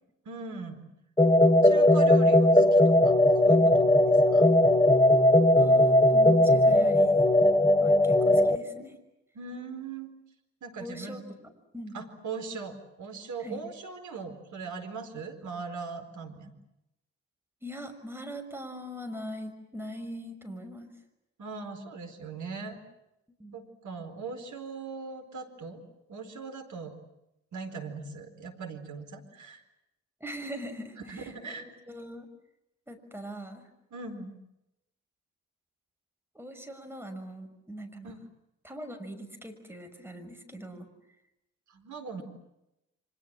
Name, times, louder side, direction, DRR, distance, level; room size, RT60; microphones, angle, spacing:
voice 1, 0.2-0.8 1.6-3.2 3.4-4.5 9.3-10.1 10.6-11.2 11.9-16.5 21.4-22.8 23.5-25.8 26.1-27.0 27.5-29.6 31.1-31.7 33.9-34.4 38.0-38.2 41.7-42.2, right 4 dB, 55° right, 5 dB, 4.5 m, -40 dB
sound 1, 1.2-8.6, left 1 dB, 10° left, 2.2 m, -19 dB
voice 2, 5.5-7.2 7.8-9.0 10.8-11.2 11.7-12.0 13.4-13.6 17.6-20.9 23.4-23.6 30.2-31.3 31.6-32.3 32.9-33.7 36.3-38.1 38.6-40.9, equal, 5° right, 5 dB, 6.2 m, -41 dB
29.0 x 25.5 x 7.6 m, 0.88 s
figure-of-eight pair, 40°, 35 cm